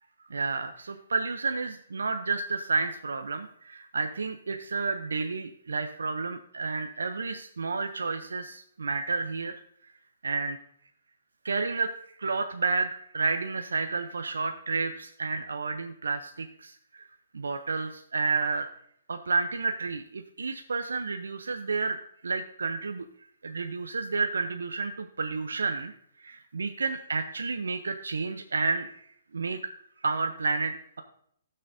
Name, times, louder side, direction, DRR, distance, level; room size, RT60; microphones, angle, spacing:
voice 1, 0.3-9.5 10.2-10.6 11.4-11.9 12.2-17.1 17.3-18.7 19.1-22.0 22.2-23.0 23.4-25.9 26.2-29.0 29.3-29.6 30.0-31.0, right 4 dB, 85° right, 7 dB, 0.6 m, -30 dB
14.5 x 6.5 x 2.6 m, 0.70 s
hypercardioid pair, 140°, 0 cm